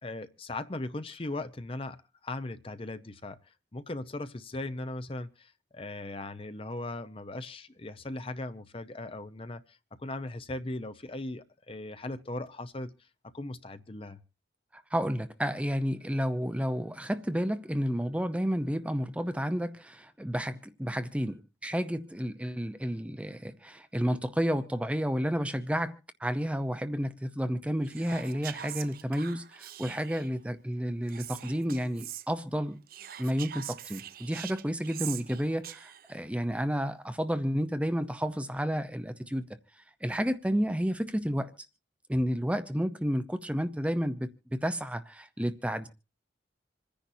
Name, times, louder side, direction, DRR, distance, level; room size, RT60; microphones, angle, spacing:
voice 1, 0.0-3.4 3.7-12.9 13.3-14.2, left 2 dB, 30° left, 0.8 m, -38 dB
voice 2, 14.7-32.8 33.2-39.5 40.0-41.5 42.1-45.9, equal, 5° right, 0.7 m, -31 dB
Whispering, 27.8-30.4 31.1-32.3 32.9-36.2, right 11 dB, 50° right, 0.6 m, -43 dB
27.0 x 10.5 x 2.7 m
head